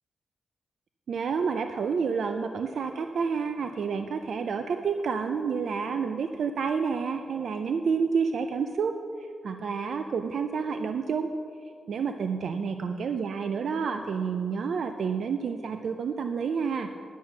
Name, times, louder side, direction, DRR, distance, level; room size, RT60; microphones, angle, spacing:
voice 1, 1.1-11.3 11.9-16.9, right 5 dB, 65° right, 7 dB, 0.4 m, -29 dB
10.0 x 8.4 x 5.8 m, 2.5 s
wide cardioid pair, 140°, 0 cm